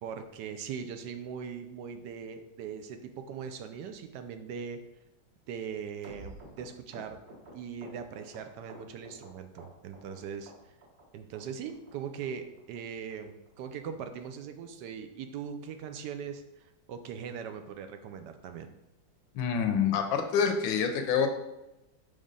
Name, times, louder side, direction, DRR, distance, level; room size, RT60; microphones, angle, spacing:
voice 1, 0.0-4.8 5.5-7.2 7.5-10.7 11.1-18.7, right 7 dB, 75° right, 7 dB, 1.0 m, -40 dB
sound 1, 6.0-9.3 9.6-10.2 10.5-11.0 11.3-11.4 11.7-11.9 12.2-12.3 12.6-12.8 13.1-13.2 13.5-13.7 14.0-14.1 14.3-14.5 14.9-15.0 15.2-15.4 15.8-15.9, right 1 dB, 50° right, 1.8 m, -50 dB
voice 2, 19.3-21.3, left 7 dB, 75° left, 6 dB, 1.4 m, -27 dB
5.2 x 3.6 x 5.3 m, 0.94 s
omnidirectional pair, 2.2 m